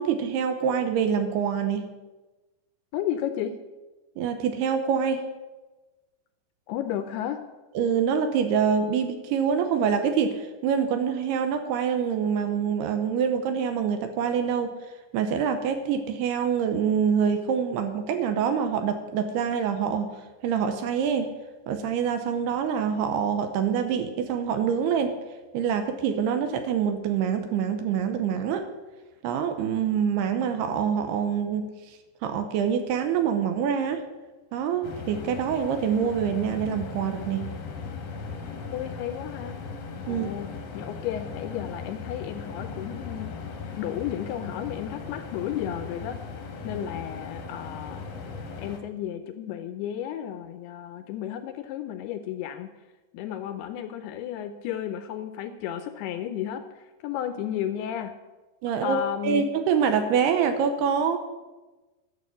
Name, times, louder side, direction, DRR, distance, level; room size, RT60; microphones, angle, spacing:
voice 1, 0.0-1.9 4.2-5.3 7.8-14.7 15.1-20.1 20.4-21.3 21.7-25.2 25.5-28.7 29.2-31.7 32.2-34.0 34.5-37.5 40.1-40.3 58.6-61.2, right 7 dB, 80° right, 7 dB, 2.7 m, -25 dB
voice 2, 2.9-3.6 6.7-7.5 38.7-39.6 40.1-43.3 43.8-46.2 46.6-48.1 48.6-52.7 53.1-56.6 57.0-58.1 58.8-59.5, left 10 dB, 80° left, 9 dB, 2.4 m, -33 dB
sound 1, 34.8-48.8, left 4 dB, 65° left, 1.7 m, -38 dB
11.5 x 6.8 x 8.5 m, 1.2 s
omnidirectional pair, 5.1 m